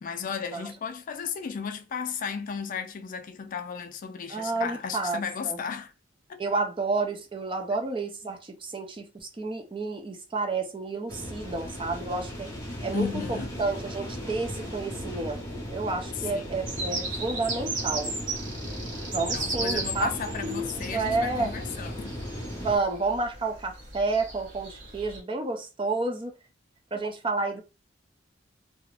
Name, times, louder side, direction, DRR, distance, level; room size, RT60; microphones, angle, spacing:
voice 1, 0.0-5.9 6.3-6.4 12.9-13.5 16.2-16.8 19.3-22.1, left 6 dB, 45° left, 0.3 m, -34 dB
voice 2, 4.3-5.2 5.4-5.6 6.4-12.5 12.8-18.2 19.1-20.1 20.4-21.5 22.6-26.3 26.9-27.6, right 3 dB, 25° right, 0.5 m, -30 dB
sound 1, 11.1-22.8, equal, 20° left, 0.7 m, -37 dB
sound 2, 16.7-25.2, right 3 dB, 85° right, 1.1 m, -36 dB
2.4 x 2.0 x 3.1 m
head